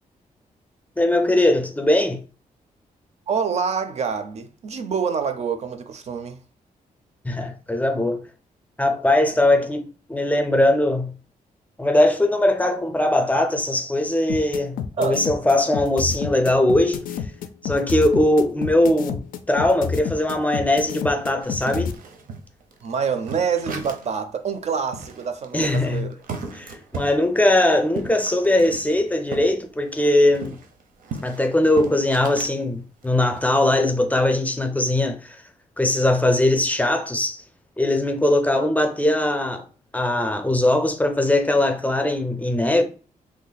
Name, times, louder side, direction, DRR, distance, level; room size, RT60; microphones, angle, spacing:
voice 1, 1.0-2.2 7.2-8.2 8.8-9.8 10.1-11.1 11.8-17.1 17.6-22.0 25.5-26.1 26.5-30.6 31.2-35.4 35.8-37.4 37.8-39.6 39.9-42.8, left 1 dB, 10° left, 0.5 m, -20 dB
voice 2, 3.3-6.4 15.0-15.2 22.8-26.1, right 6 dB, 50° right, 0.4 m, -26 dB
sound 1, 14.3-21.9, left 7 dB, 85° left, 0.4 m, -29 dB
sound 2, 21.4-24.2 24.6-24.7 24.9-29.5 29.8-32.6 33.0-33.4, right 4 dB, 90° right, 0.7 m, -36 dB
3.1 x 2.1 x 3.9 m
wide cardioid pair, 140°, 14 cm